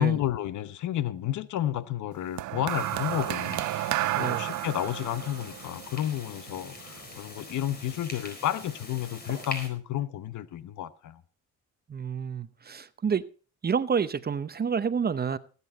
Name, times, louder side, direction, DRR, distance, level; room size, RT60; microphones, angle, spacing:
voice 1, 0.0-11.2, left 12 dB, 75° left, 0.9 m, -31 dB
sound 1, 2.4-6.8 7.7-8.0, right 16 dB, 75° right, 0.6 m, -31 dB
sound 2, 2.7-9.7, left 2 dB, 30° left, 4.4 m, -43 dB
voice 2, 11.9-13.2 13.6-15.4, right 6 dB, 30° right, 0.8 m, -28 dB
18.0 x 8.5 x 4.1 m
cardioid pair, 90°, 30 cm